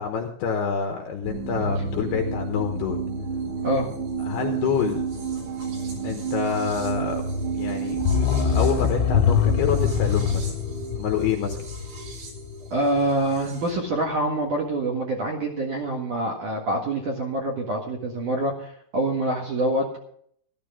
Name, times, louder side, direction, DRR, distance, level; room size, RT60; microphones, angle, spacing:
voice 1, 0.0-3.0 4.2-5.0 6.0-7.2 7.5-8.0 8.5-10.5 11.0-11.7, left 7 dB, 70° left, 4 dB, 2.6 m, -27 dB
sound 1, 1.2-13.7, right 4 dB, 75° right, 6.8 m, -31 dB
sound 2, 7.9-12.7 13.0-13.1, left 8 dB, 85° left, 4.5 m, -24 dB
voice 2, 12.7-20.0, right 1 dB, 55° right, 1 dB, 2.4 m, -26 dB
14.5 x 13.5 x 3.8 m, 0.64 s
omnidirectional pair, 6.0 m